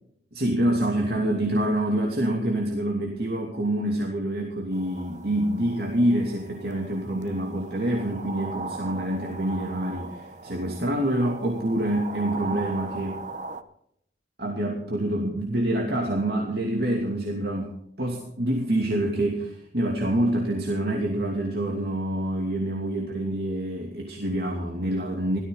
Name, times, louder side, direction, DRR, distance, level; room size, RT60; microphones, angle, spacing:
voice 1, 0.3-13.2 14.4-25.4, right 1 dB, 65° right, 0 dB, 2.7 m, -26 dB
sound 1, 4.7-13.6, right 3 dB, 45° right, 0.9 m, -39 dB
17.0 x 14.0 x 4.0 m, 0.72 s
head